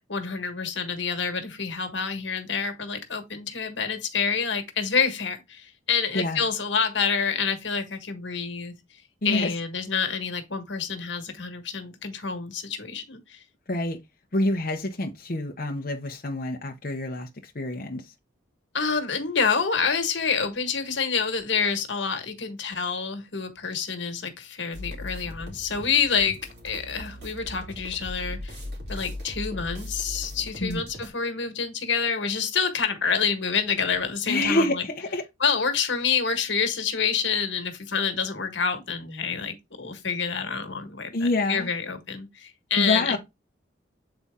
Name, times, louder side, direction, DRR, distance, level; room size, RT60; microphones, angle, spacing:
voice 1, 0.1-8.8 9.2-13.4 18.7-28.6 28.9-34.8 35.4-43.2, left 6 dB, 80° left, 1.5 m, -27 dB
voice 2, 9.2-9.5 13.7-14.0 14.3-18.1 30.6-30.8 34.3-35.2 41.1-41.7 42.8-43.2, left 2 dB, 50° left, 0.8 m, -27 dB
sound 1, 24.7-31.1, left 1 dB, 60° right, 2.7 m, -38 dB
7.9 x 4.1 x 3.6 m
head